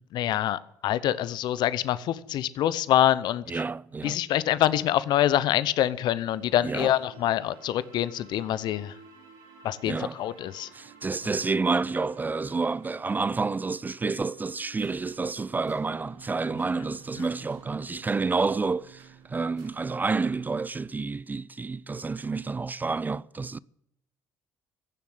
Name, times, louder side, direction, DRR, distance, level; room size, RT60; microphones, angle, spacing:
voice 1, 0.1-3.4 4.0-8.9 9.6-10.7, left 12 dB, 60° left, 0.8 m, -25 dB
voice 2, 3.5-4.2 6.6-7.0 9.8-10.2 10.7-23.6, right 4 dB, 20° right, 0.4 m, -29 dB
sound 1, 6.0-19.8, right 6 dB, 75° right, 6.5 m, -52 dB
16.0 x 7.2 x 9.5 m
hypercardioid pair, 65°, 8 cm